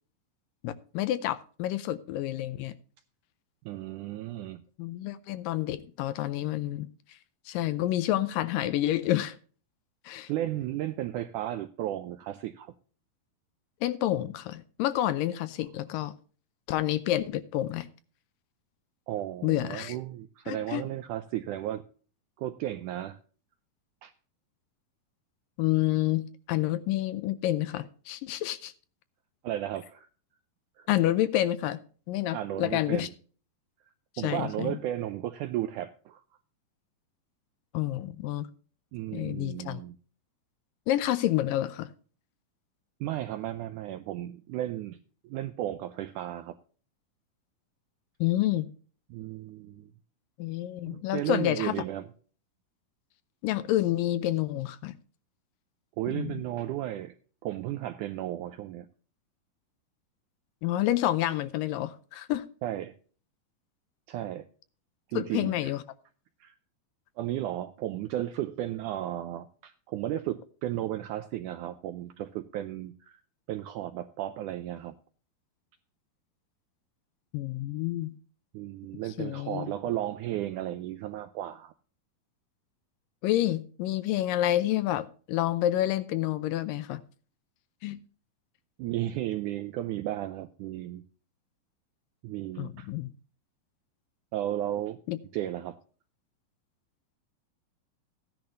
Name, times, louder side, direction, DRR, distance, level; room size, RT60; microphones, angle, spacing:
voice 1, 0.6-2.8 4.8-7.2 7.5-9.4 10.1-10.3 13.8-16.2 16.7-17.9 19.4-20.0 20.5-20.8 25.6-28.7 30.9-31.8 32.1-33.1 34.2-34.8 37.7-38.5 39.1-39.8 40.9-41.9 48.2-48.7 50.4-51.8 53.4-54.9 56.1-56.4 60.6-62.4 65.1-65.8 77.3-78.2 79.2-79.7 83.2-87.0 87.8-88.0 92.6-93.1 95.1-95.2, left 14 dB, 80° left, 2.2 m, -29 dB
voice 2, 3.7-4.6 10.3-12.7 19.1-21.8 22.4-23.2 24.0-24.1 29.4-30.1 30.8-30.9 32.3-33.1 34.2-36.2 38.9-40.0 43.0-45.0 45.2-46.6 49.1-49.9 50.9-52.1 56.0-57.1 57.4-58.9 62.6-62.9 64.1-64.4 65.1-65.7 66.4-66.6 67.2-73.2 73.5-75.0 78.5-81.7 88.8-91.0 92.2-92.9 94.3-95.0 95.3-95.8, right 13 dB, 85° right, 1.8 m, -34 dB
15.5 x 10.5 x 2.6 m
omnidirectional pair, 4.2 m